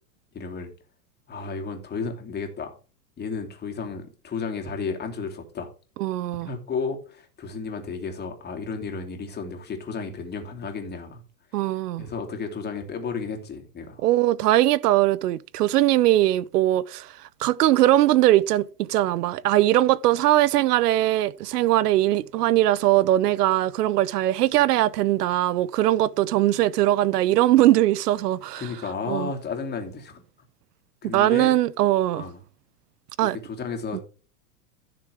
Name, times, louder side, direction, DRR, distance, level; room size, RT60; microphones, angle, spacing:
voice 1, 0.3-0.7 1.3-2.8 3.2-5.7 6.4-11.2 11.6-11.7 12.0-14.0 28.5-30.2 31.0-31.5 32.1-32.4 33.4-34.0, left 5 dB, 20° left, 2.6 m, -33 dB
voice 2, 6.0-6.5 11.5-12.1 14.0-17.1 17.4-28.7 29.1-29.3 31.1-32.2 33.2-33.4 33.9-34.0, right 14 dB, 80° right, 0.7 m, -21 dB
15.5 x 6.8 x 3.4 m
supercardioid pair, 135°, 47 cm